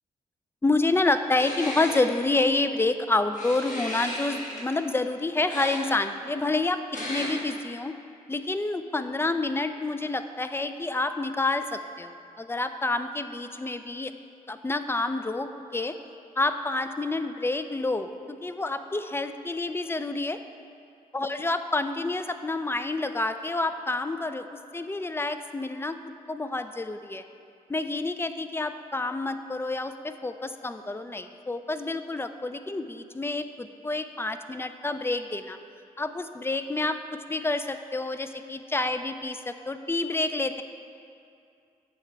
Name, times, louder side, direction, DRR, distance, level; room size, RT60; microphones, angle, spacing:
voice 1, 0.6-7.9 8.3-14.1 14.5-15.9 16.4-20.4 21.1-26.0 26.3-27.2 27.7-35.6 36.0-40.6, left 2 dB, 15° left, 10 dB, 0.3 m, -28 dB
sound 1, 1.3-2.0 3.3-4.7 5.5-5.8 6.9-7.4, left 1 dB, 60° left, 1.4 m, -35 dB
7.7 x 3.2 x 4.6 m, 2.5 s
supercardioid pair, 45°, 15 cm